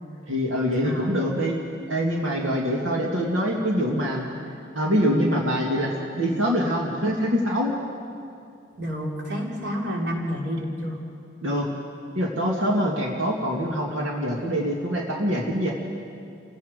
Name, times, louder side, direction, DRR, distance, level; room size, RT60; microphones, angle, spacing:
voice 1, 0.3-1.5 1.9-4.3 4.7-7.7 11.4-11.7 12.2-15.7, equal, 90° right, -2 dB, 2.3 m, -24 dB
voice 2, 0.8-1.2 8.8-11.0, equal, 60° right, -2 dB, 3.4 m, -29 dB
29.5 x 16.5 x 5.2 m, 2.5 s
head